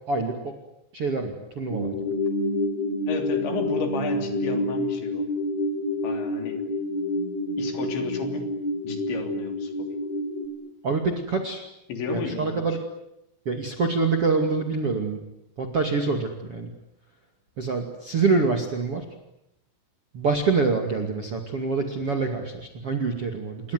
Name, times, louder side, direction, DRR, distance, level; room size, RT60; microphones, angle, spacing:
voice 1, 0.1-0.5 0.9-1.9 10.8-11.6 12.1-12.8 13.5-15.2 15.6-16.7 17.6-19.0 20.1-23.7, right 4 dB, 40° right, 4 dB, 2.4 m, -26 dB
sound 1, 1.7-10.5, left 1 dB, 35° left, 4.8 m, -28 dB
voice 2, 3.1-5.3 6.0-6.7 7.6-8.5 8.8-9.9 11.9-12.6, left 4 dB, 65° left, 6 dB, 5.4 m, -33 dB
28.0 x 22.0 x 9.4 m, 0.80 s
omnidirectional pair, 5.8 m